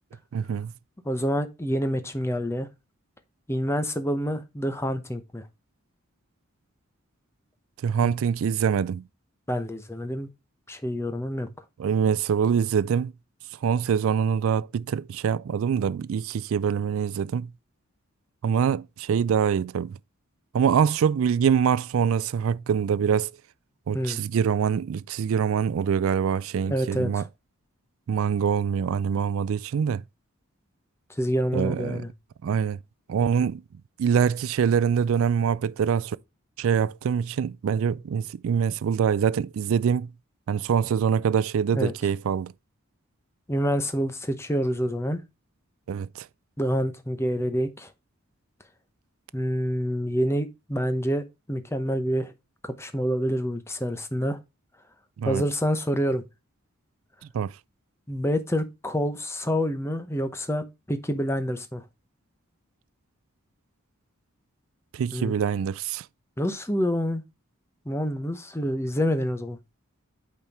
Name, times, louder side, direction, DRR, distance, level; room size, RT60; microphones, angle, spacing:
voice 1, 0.3-0.7 7.8-9.0 11.8-13.1 13.6-17.5 18.4-20.0 20.5-23.3 23.9-27.2 28.1-30.0 31.5-32.0 32.4-32.8 33.1-33.6 34.0-36.2 36.6-40.1 40.5-42.5 45.9-46.3 55.2-55.4 57.3-57.5 64.9-66.0, right 7 dB, 70° right, 0.3 m, -24 dB
voice 2, 1.0-2.7 3.5-5.4 8.0-8.1 9.5-10.3 10.7-11.5 23.9-24.2 26.6-27.2 31.2-32.1 41.7-41.9 43.5-45.2 46.6-47.9 49.3-52.3 52.6-54.4 55.2-56.2 58.1-61.8 65.1-65.3 66.4-67.2 67.9-69.6, equal, 10° left, 0.8 m, -27 dB
8.7 x 4.4 x 3.5 m
head